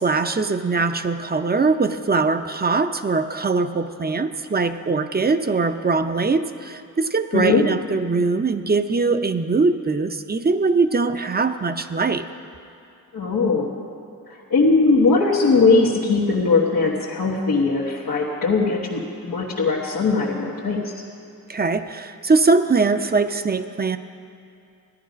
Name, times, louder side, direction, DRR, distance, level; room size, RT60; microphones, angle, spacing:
voice 1, 0.0-12.3 21.5-24.0, right 4 dB, 30° right, 9 dB, 0.6 m, -21 dB
voice 2, 7.3-7.6 13.1-13.7 14.3-20.9, left 3 dB, 90° left, -6 dB, 1.3 m, -20 dB
15.0 x 10.5 x 5.1 m, 2.5 s
cardioid pair, 60°, 33 cm